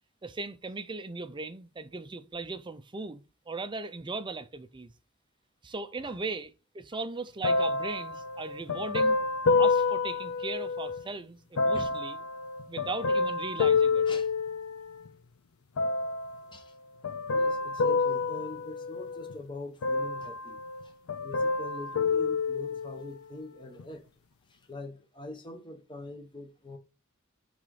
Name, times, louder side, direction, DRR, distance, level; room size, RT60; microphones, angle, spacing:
voice 1, 0.2-4.9 5.6-9.2 9.6-12.2 12.6-14.1, right 3 dB, 20° right, 0.5 m, -38 dB
sound 1, 7.4-11.0 11.6-15.1 15.8-16.4 17.0-19.4 19.8-20.8 21.1-23.1 23.8-23.9, left 4 dB, 75° left, 0.5 m, -28 dB
voice 2, 17.3-20.6 21.2-24.0 24.7-26.8, left 2 dB, 25° left, 1.1 m, -43 dB
5.9 x 3.9 x 4.7 m
head